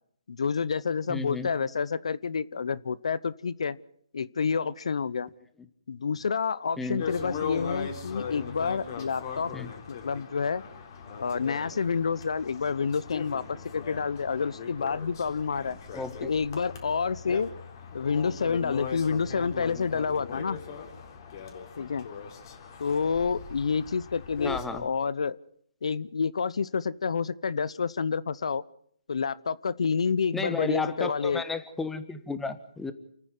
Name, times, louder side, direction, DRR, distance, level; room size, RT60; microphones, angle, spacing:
voice 1, 0.3-3.8 4.1-5.3 5.9-9.5 9.9-10.6 11.2-15.8 16.2-17.5 17.9-20.6 21.8-22.1 22.8-25.4 25.8-28.6 29.1-31.4, left 5 dB, 70° left, 18 dB, 0.7 m, -29 dB
voice 2, 1.1-1.5 6.8-7.1 9.5-9.7 15.9-16.3 24.4-24.9 30.3-32.9, left 3 dB, 5° left, 11 dB, 1.2 m, -33 dB
sound 1, 7.0-24.6, left 6 dB, 40° left, 3.8 m, -39 dB
29.0 x 9.9 x 9.8 m, 0.65 s
hypercardioid pair, 150°, 3 cm